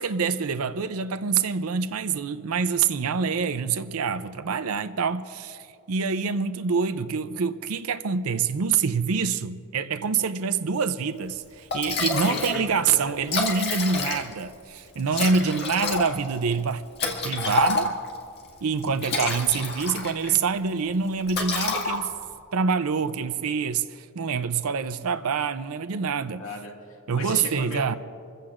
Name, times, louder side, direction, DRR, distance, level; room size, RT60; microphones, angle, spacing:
voice 1, 0.0-17.9 18.6-22.1 22.5-26.4 27.1-28.0, right 5 dB, 80° right, 0.5 m, -26 dB
Liquid, 11.3-11.4 11.7-12.6 12.9-13.0 13.2-14.5 15.1-18.2 18.8-20.4 20.7-20.9 21.3-22.3, left 3 dB, 45° left, 2.0 m, -28 dB
voice 2, 12.2-13.1 15.1-15.4 26.3-27.8, left 2 dB, 70° left, 2.0 m, -37 dB
27.5 x 15.5 x 2.5 m
head